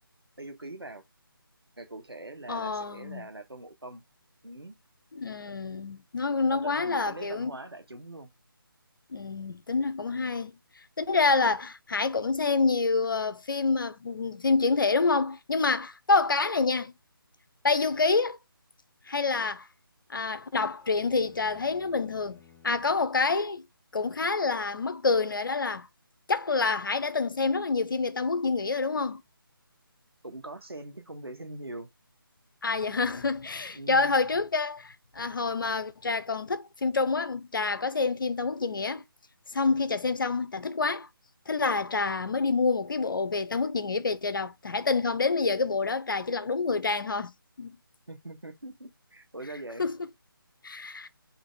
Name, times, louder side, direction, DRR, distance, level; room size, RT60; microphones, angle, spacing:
voice 1, 0.4-1.0 1.8-4.0 4.4-4.7 6.5-8.3 10.1-10.4 30.2-31.9 33.7-34.1 48.1-49.9, right 2 dB, 90° right, 1.3 m, -42 dB
voice 2, 2.5-3.3 5.1-7.5 9.1-10.6 11.0-16.9 17.6-18.4 19.1-19.7 20.1-23.6 23.9-25.9 26.3-29.2 32.6-39.0 39.5-41.1 41.5-47.8 49.8-49.9 50.6-51.1, left 4 dB, 60° left, 0.7 m, -27 dB
sound 1, 20.8-23.0, left 8 dB, 5° left, 1.9 m, -56 dB
3.5 x 2.8 x 4.6 m
figure-of-eight pair, 155°, 12 cm